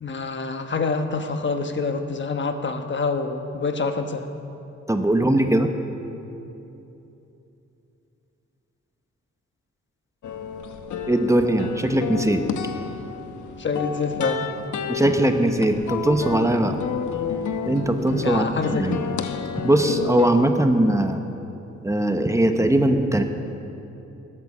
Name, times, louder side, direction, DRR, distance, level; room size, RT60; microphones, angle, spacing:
voice 1, 0.0-4.3 13.6-14.5 18.2-19.1, left 4 dB, 40° left, 7 dB, 1.2 m, -26 dB
voice 2, 4.9-5.7 11.1-12.4 14.9-16.8 17.7-19.0 19.6-21.2 21.8-23.2, right 1 dB, 10° right, 6 dB, 0.9 m, -20 dB
sound 1, 10.2-20.3, left 7 dB, 90° left, 0.9 m, -31 dB
16.0 x 12.5 x 7.3 m, 2.9 s
wide cardioid pair, 130°, 29 cm